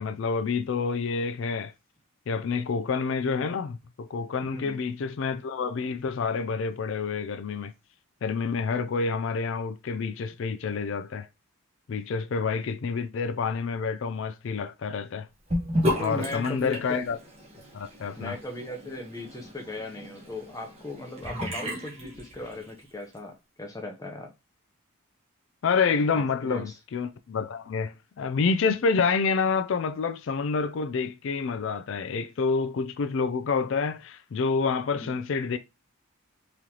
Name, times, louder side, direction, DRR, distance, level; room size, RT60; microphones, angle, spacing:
voice 1, 0.0-1.7 2.3-7.7 8.2-11.3 11.9-15.3 16.0-17.2 17.7-18.4 25.6-35.6, left 5 dB, 60° left, 0.4 m, -28 dB
Sink (filling or washing) / Bathtub (filling or washing), 15.5-22.8, left 1 dB, 30° right, 1.2 m, -33 dB
voice 2, 16.0-17.0 18.2-24.3 26.1-26.7 34.9-35.1, left 2 dB, 15° left, 0.7 m, -38 dB
3.8 x 3.1 x 2.9 m
head